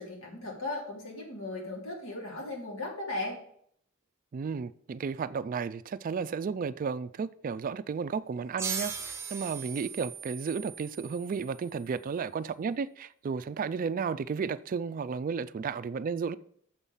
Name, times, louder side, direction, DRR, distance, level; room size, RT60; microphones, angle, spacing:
voice 1, 0.0-3.4, left 2 dB, 70° left, 3.2 m, -37 dB
voice 2, 4.3-16.4, right 5 dB, 40° right, 0.3 m, -33 dB
sound 1, 8.6-11.8, right 5 dB, 15° right, 1.0 m, -39 dB
7.2 x 5.6 x 7.0 m
head